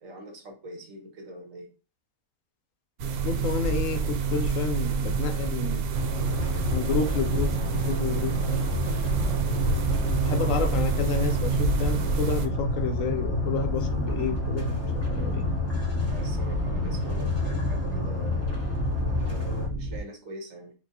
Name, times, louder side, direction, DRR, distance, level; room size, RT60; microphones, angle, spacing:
voice 1, 0.0-1.7 9.2-9.5 10.6-10.7 15.9-18.5 19.2-20.7, right 1 dB, 65° right, 1.3 m, -43 dB
sound 1, 3.0-12.5, right 5 dB, 90° right, 1.1 m, -28 dB
voice 2, 3.2-5.8 6.7-8.7 10.2-14.8 15.1-15.4, left 6 dB, 70° left, 0.9 m, -31 dB
sound 2, 5.9-19.7, left 3 dB, 10° left, 0.8 m, -30 dB
sound 3, 9.0-20.0, right 2 dB, 25° right, 1.8 m, -32 dB
4.4 x 2.3 x 2.7 m
omnidirectional pair, 1.5 m